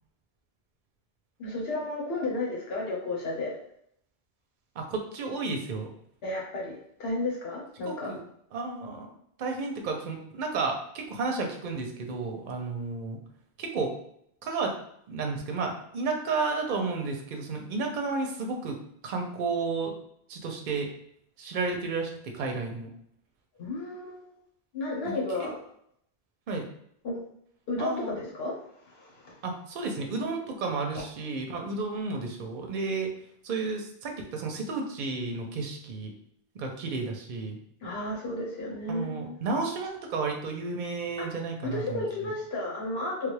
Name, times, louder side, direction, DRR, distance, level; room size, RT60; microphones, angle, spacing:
voice 1, 1.4-3.5 6.2-8.1 23.6-24.3 24.7-25.6 27.0-27.2 27.7-28.6 28.9-29.4 30.9-31.0 37.8-39.4 41.2-41.3 41.6-43.3, left 2 dB, 70° left, -3 dB, 1.1 m, -33 dB
voice 2, 4.8-5.9 7.8-8.2 8.5-9.1 9.4-13.2 13.6-13.9 14.4-14.8 15.1-18.8 19.0-19.9 20.3-20.9 21.4-22.9 25.0-25.1 26.5-26.7 27.8-28.2 29.4-33.1 33.4-36.1 36.5-37.6 38.9-42.0, right 4 dB, 55° right, 3 dB, 0.7 m, -32 dB
3.3 x 2.3 x 3.2 m, 0.71 s
omnidirectional pair, 1.1 m